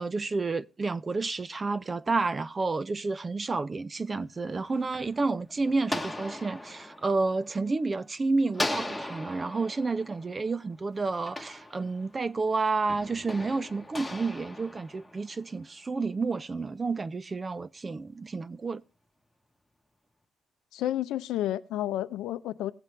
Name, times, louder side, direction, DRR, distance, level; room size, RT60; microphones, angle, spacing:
voice 1, 0.0-18.8, right 3 dB, 30° right, 0.4 m, -30 dB
sound 1, 4.4-8.1 8.5-12.3 12.9-15.6, left 1 dB, 10° left, 1.0 m, -38 dB
voice 2, 20.7-22.7, left 13 dB, 90° left, 0.5 m, -31 dB
18.5 x 7.5 x 3.2 m
cardioid pair, 90°, 0 cm